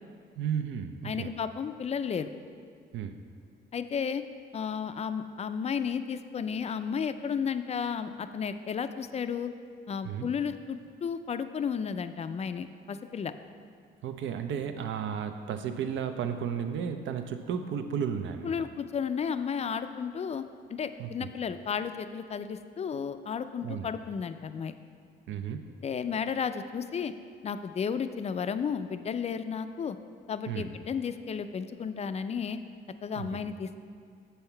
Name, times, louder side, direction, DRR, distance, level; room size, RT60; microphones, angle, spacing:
voice 1, 0.4-1.3 2.9-3.2 10.0-10.3 14.0-18.5 21.0-21.3 23.6-23.9 25.3-25.6 30.5-30.7 33.2-33.4, right 7 dB, 70° right, 8 dB, 0.6 m, -33 dB
voice 2, 1.0-2.3 3.7-4.2 4.5-9.5 9.9-13.3 18.4-20.4 20.7-24.7 25.8-27.1 27.4-30.0 30.3-32.6 33.0-33.8, left 6 dB, 35° left, 10 dB, 0.4 m, -33 dB
7.0 x 5.6 x 4.4 m, 2.2 s
cardioid pair, 90°, 20 cm